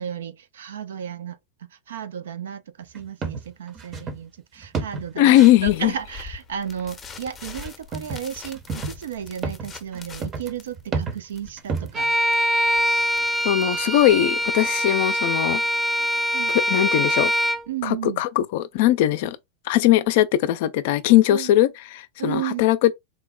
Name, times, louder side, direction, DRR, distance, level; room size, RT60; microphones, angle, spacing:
voice 1, 0.0-1.4 1.7-12.1 16.3-16.5 17.7-18.2 21.3-21.5 22.2-22.7, right 9 dB, 75° right, 0.5 m, -33 dB
sound 1, 2.9-4.2 4.6-5.6 7.6-8.2 8.5-12.1, right 4 dB, 30° right, 0.8 m, -31 dB
voice 2, 5.2-5.9 13.4-15.6 16.7-17.3 17.8-19.4 19.7-22.9, left 14 dB, 60° left, 0.4 m, -19 dB
sound 2, 5.6-14.8, left 5 dB, 25° left, 0.7 m, -43 dB
Bowed string instrument, 11.9-17.7, equal, 15° right, 0.4 m, -23 dB
3.7 x 2.0 x 2.2 m
hypercardioid pair, 95°, 0 cm